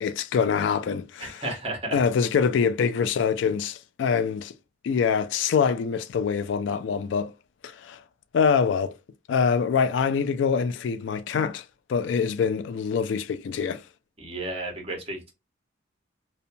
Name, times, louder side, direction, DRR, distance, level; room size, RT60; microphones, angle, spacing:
voice 1, 0.0-1.4 1.9-4.5 4.8-7.3 7.6-8.0 8.3-8.9 9.3-11.6 11.9-13.8, left 6 dB, 70° left, 0.3 m, -24 dB
voice 2, 1.2-2.0 14.2-15.3, right 2 dB, 30° right, 1.0 m, -33 dB
2.7 x 2.2 x 2.6 m
head